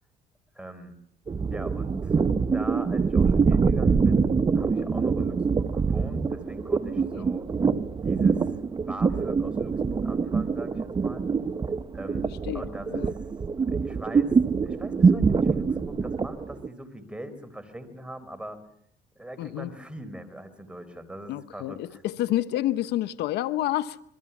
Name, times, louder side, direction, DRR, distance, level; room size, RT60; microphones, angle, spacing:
voice 1, 0.5-0.9 1.5-2.2 2.5-7.5 8.0-8.6 8.9-11.3 11.9-12.2 12.5-13.2 13.7-18.6 19.2-22.0, right 1 dB, 5° right, 4.3 m, -41 dB
sound 1, 1.3-16.7, right 5 dB, 25° right, 1.0 m, -24 dB
voice 2, 12.4-13.1 19.4-19.7 21.3-24.0, left 14 dB, 80° left, 0.9 m, -29 dB
27.5 x 22.5 x 7.2 m
cardioid pair, 110°, 17 cm